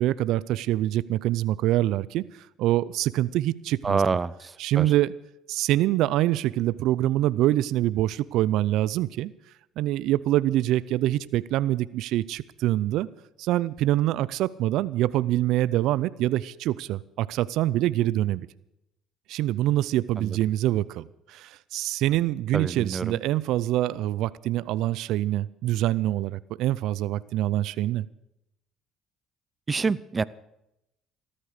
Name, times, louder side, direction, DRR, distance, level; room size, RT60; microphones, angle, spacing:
voice 1, 0.0-2.2 2.6-4.0 4.6-5.1 5.5-9.3 9.8-13.1 13.4-18.5 19.3-28.1, right 14 dB, 75° right, 19 dB, 0.5 m, -25 dB
voice 2, 3.8-4.5 4.8-4.9 20.2-20.4 22.5-23.2 29.7-30.2, right 4 dB, 30° right, 18 dB, 0.6 m, -26 dB
14.0 x 13.0 x 6.6 m, 0.84 s
supercardioid pair, 65°, 0 cm